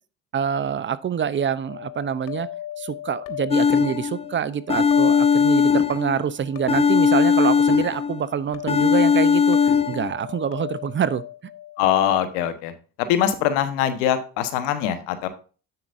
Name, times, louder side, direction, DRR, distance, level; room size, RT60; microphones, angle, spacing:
voice 1, 0.3-2.5 2.8-9.6 9.9-11.2, right 8 dB, 35° right, 17 dB, 0.7 m, -26 dB
sound 1, 1.7-12.2, left 12 dB, 65° left, 1.1 m, -37 dB
sound 2, 3.5-4.3 4.7-6.3 6.7-8.3 8.7-10.1, left 6 dB, 15° left, 0.7 m, -19 dB
voice 2, 11.8-12.7 13.1-15.3, left 10 dB, 85° left, 10 dB, 1.3 m, -22 dB
9.8 x 7.3 x 2.6 m, 0.36 s
supercardioid pair, 80°, 35 cm